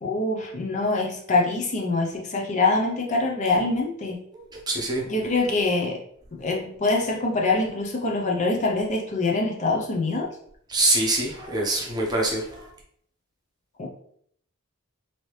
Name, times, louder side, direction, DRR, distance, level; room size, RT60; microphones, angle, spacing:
voice 1, 0.0-4.2 5.1-6.0 6.3-10.3 13.8-13.9, left 3 dB, 35° left, 0 dB, 0.5 m, -24 dB
voice 2, 4.7-5.0 10.7-12.7, right 2 dB, 20° right, -1 dB, 0.7 m, -24 dB
3.2 x 2.7 x 3.0 m, 0.66 s
head